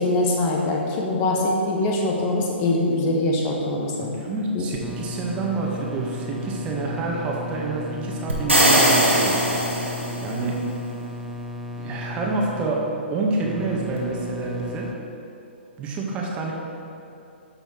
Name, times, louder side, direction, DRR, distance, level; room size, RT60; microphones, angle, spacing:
voice 1, 0.0-3.9 4.5-4.7, left 2 dB, 25° left, -1 dB, 1.6 m, -23 dB
voice 2, 4.0-9.4 10.2-10.6 11.8-14.9 15.8-16.5, right 3 dB, 20° right, -2 dB, 1.8 m, -28 dB
sound 1, 4.8-14.9, left 2 dB, ahead, 0.7 m, -35 dB
sound 2, 8.3-10.4, right 1 dB, 85° right, 2.7 m, -19 dB
12.5 x 7.6 x 4.6 m, 2.7 s
figure-of-eight pair, 120°, 7 cm